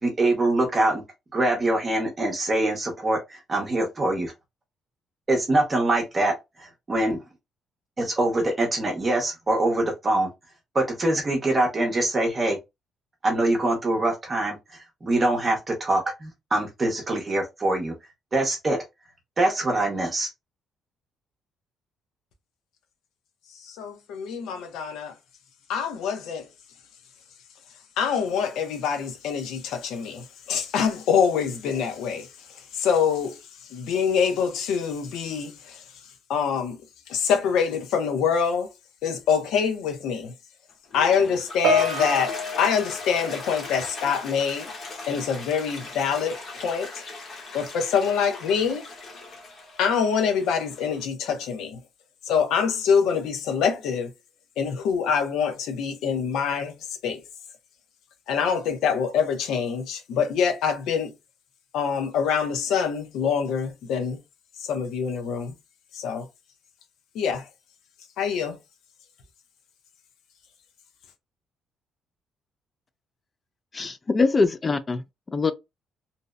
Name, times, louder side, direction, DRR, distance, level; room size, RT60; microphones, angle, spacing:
voice 1, 0.0-1.0 1.3-4.3 5.3-6.3 6.6-7.2 8.0-10.3 10.7-12.6 13.2-14.6 15.0-17.9 18.3-18.8 19.4-20.3, right 2 dB, 25° right, 0.7 m, -24 dB
voice 2, 23.5-25.1 25.7-26.5 28.0-33.4 33.7-35.8 36.3-36.8 37.1-38.7 39.0-40.3 40.9-44.7 45.1-47.0 47.5-48.8 49.8-51.8 52.3-54.1 54.6-57.2 58.3-61.1 61.7-64.2 64.6-65.5 65.9-66.3 67.1-67.5 68.2-68.6, left 6 dB, 85° left, 0.6 m, -25 dB
Toilet flush, 40.7-51.0, left 3 dB, 50° left, 0.9 m, -39 dB
Piano, 41.6-44.3 44.5-44.9 45.7-45.8, left 1 dB, 70° right, 0.6 m, -28 dB
voice 3, 73.7-75.0 75.3-75.5, left 4 dB, 25° left, 0.3 m, -23 dB
2.6 x 2.0 x 2.3 m
cardioid pair, 130°, 0 cm